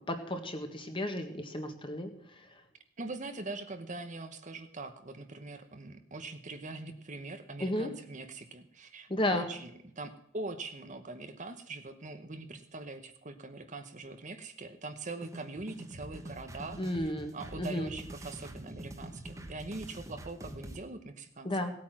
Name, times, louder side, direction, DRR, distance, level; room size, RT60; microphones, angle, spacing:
voice 1, 0.0-2.1 2.4-2.5 7.6-7.9 9.1-9.5 16.8-17.9 21.4-21.7, left 1 dB, 25° left, 5 dB, 1.7 m, -33 dB
voice 2, 3.0-9.7 10.0-21.5, right 3 dB, 35° right, 8 dB, 1.0 m, -42 dB
sound 1, 15.2-20.8, right 1 dB, 15° right, 1.4 m, -45 dB
17.5 x 8.8 x 6.0 m, 0.71 s
head